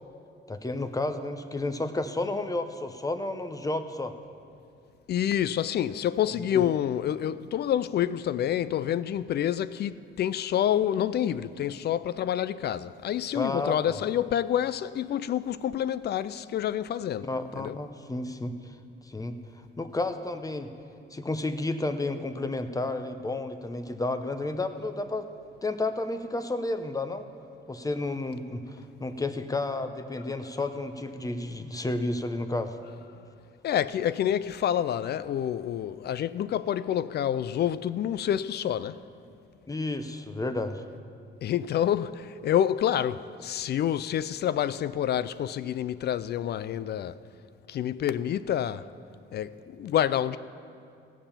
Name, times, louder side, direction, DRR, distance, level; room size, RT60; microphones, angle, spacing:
voice 1, 0.5-4.2 6.5-6.6 13.3-14.0 17.2-18.8 19.0-19.4 19.8-20.7 21.1-25.3 25.6-27.3 27.7-32.8 39.7-40.8, left 2 dB, 15° left, 0.7 m, -31 dB
voice 2, 5.1-17.3 17.6-17.8 33.6-39.0 41.4-47.2 47.7-48.9 49.3-50.4, left 10 dB, 55° left, 0.4 m, -28 dB
16.0 x 7.0 x 5.7 m
cardioid pair, 90°, 20 cm